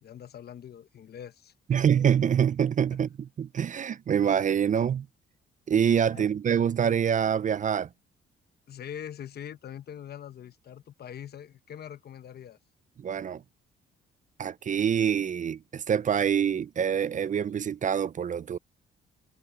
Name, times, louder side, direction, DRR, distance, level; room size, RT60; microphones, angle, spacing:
voice 1, 0.0-1.8 2.9-3.0 6.1-6.3 8.7-12.6, left 9 dB, 55° left, 1.1 m, -43 dB
voice 2, 1.7-5.1 5.7-7.9 13.0-13.4 14.4-18.6, right 8 dB, 40° right, 0.5 m, -25 dB
cardioid pair, 90°, 20 cm